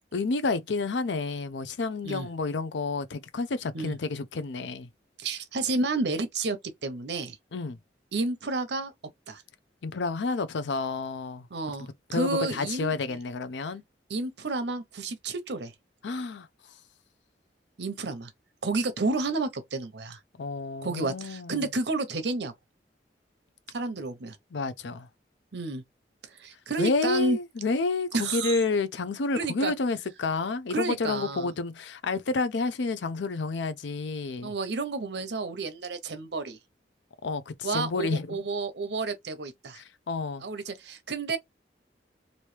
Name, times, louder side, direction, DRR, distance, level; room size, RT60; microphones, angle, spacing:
voice 1, 0.1-4.9 7.5-7.8 9.8-11.5 12.1-13.8 16.0-16.5 20.4-21.6 24.5-25.1 26.8-34.5 37.2-38.4 39.8-40.5, left 3 dB, 85° left, 0.5 m, -30 dB
voice 2, 5.2-6.6 6.8-7.4 8.1-8.9 9.3-9.4 11.5-13.2 14.1-15.7 17.8-18.3 18.6-20.2 20.8-22.5 23.7-24.4 25.5-25.8 26.4-27.4 28.1-28.6 29.3-29.7 30.7-31.5 34.4-36.6 37.6-39.8 40.4-41.4, right 3 dB, 75° right, 0.8 m, -30 dB
3.1 x 2.7 x 3.2 m
head